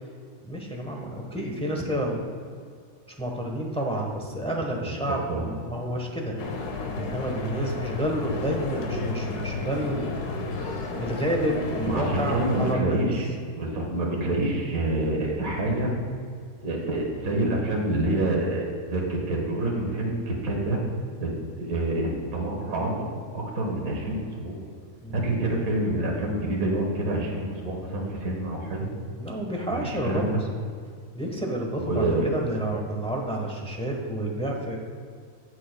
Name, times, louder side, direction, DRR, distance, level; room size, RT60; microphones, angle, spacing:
voice 1, 0.4-2.3 3.2-6.4 7.0-10.2 11.0-13.1 25.0-25.2 29.2-30.3 31.1-34.8, right 1 dB, 5° left, 0 dB, 0.8 m, -29 dB
sound 1, 6.4-12.7, left 3 dB, 80° left, 1.5 m, -32 dB
voice 2, 11.8-13.3 13.6-15.9 16.6-20.8 21.2-23.1 23.3-24.6 25.1-28.9 29.7-30.4 31.7-32.3, right 1 dB, 65° right, -1 dB, 1.9 m, -27 dB
16.5 x 6.2 x 2.2 m, 2.2 s
omnidirectional pair, 1.7 m